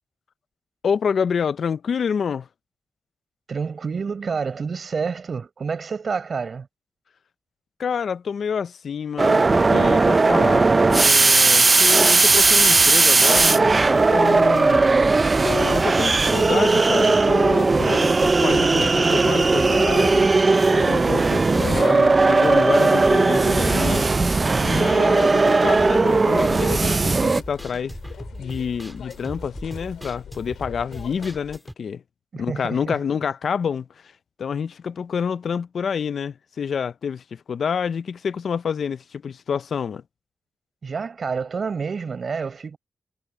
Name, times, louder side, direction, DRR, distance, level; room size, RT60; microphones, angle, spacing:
voice 1, 0.8-2.5 7.8-14.8 15.4-20.3 20.7-24.1 24.6-28.0 28.4-32.0 32.4-34.1 34.4-40.0, left 6 dB, 70° left, 0.6 m, -28 dB
voice 2, 3.5-6.7 32.3-33.0 40.8-42.8, right 5 dB, 55° right, 4.6 m, -28 dB
sound 1, 9.2-27.4, right 3 dB, 35° right, 0.5 m, -17 dB
sound 2, 12.3-31.7, equal, 5° right, 2.9 m, -39 dB
sound 3, 13.6-31.6, left 8 dB, 90° left, 6.4 m, -42 dB
cardioid pair, 80°, 0 cm